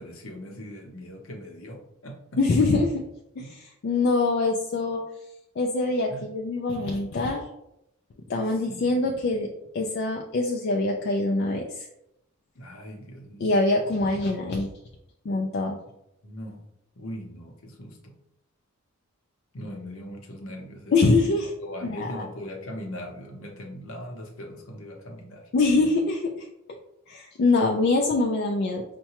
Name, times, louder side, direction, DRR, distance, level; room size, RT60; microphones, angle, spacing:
voice 1, 0.0-2.7 3.4-3.5 6.1-6.3 8.5-9.0 12.5-13.5 15.9-16.0 16.2-16.6 16.9-18.1 19.5-21.3 21.6-25.5, equal, 65° left, 2 dB, 0.8 m, -40 dB
voice 2, 2.4-2.9 3.4-5.0 5.6-7.4 8.3-9.5 9.7-11.9 13.4-14.7 15.3-15.8 20.9-21.5 21.9-22.2 25.5-26.5 27.1-28.8, left 3 dB, 50° left, 1 dB, 0.3 m, -24 dB
5.5 x 2.2 x 2.9 m, 0.82 s
head